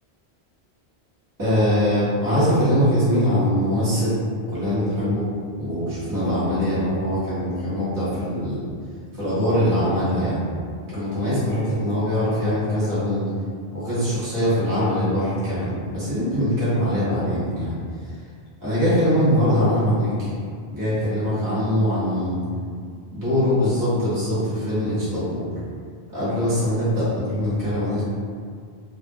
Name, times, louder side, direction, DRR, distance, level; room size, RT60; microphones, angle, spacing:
voice 1, 1.4-4.2 4.5-5.2 5.6-8.6 9.2-10.4 10.9-13.2 13.7-17.7 18.6-20.3 20.7-22.4 23.1-25.4 26.1-28.0, equal, 20° right, -12 dB, 0.7 m, -22 dB
2.4 x 2.0 x 2.6 m, 2.1 s
omnidirectional pair, 1.1 m